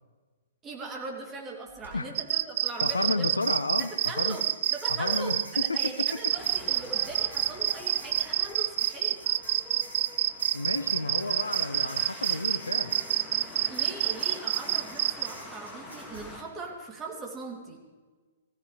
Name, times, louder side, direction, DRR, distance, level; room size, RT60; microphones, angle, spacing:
voice 1, 0.6-3.4 3.8-4.4 4.7-9.2 13.7-18.0, right 3 dB, 20° right, 0 dB, 2.9 m, -40 dB
sound 1, 1.7-1.9 2.7-16.3, right 1 dB, 80° right, 3.5 m, -48 dB
sound 2, 2.2-15.3, right 12 dB, 50° right, 0.4 m, -27 dB
voice 2, 2.8-4.4 5.0-6.2 10.5-13.0, left 3 dB, 80° left, 12 dB, 0.7 m, -31 dB
sound 3, 6.3-16.4, left 2 dB, 10° left, 2.1 m, -46 dB
17.5 x 16.0 x 3.3 m, 1.3 s
figure-of-eight pair, 115°, 0 cm